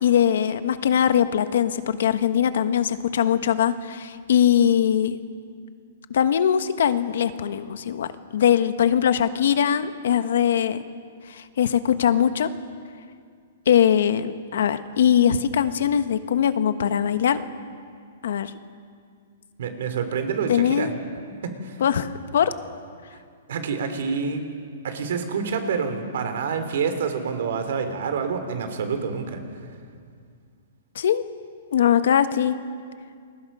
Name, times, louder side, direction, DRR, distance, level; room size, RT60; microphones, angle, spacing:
voice 1, 0.0-5.2 6.1-10.8 11.3-12.5 13.7-17.4 18.2-18.5 20.5-20.9 21.8-22.5 30.9-31.2 31.7-32.6, left 9 dB, 65° left, 11 dB, 1.2 m, -21 dB
voice 2, 19.6-21.0 21.4-21.8 23.5-24.4 24.8-29.4, right 5 dB, 65° right, 8 dB, 3.2 m, -27 dB
28.5 x 21.5 x 5.6 m, 2.1 s
hypercardioid pair, 165°, 0 cm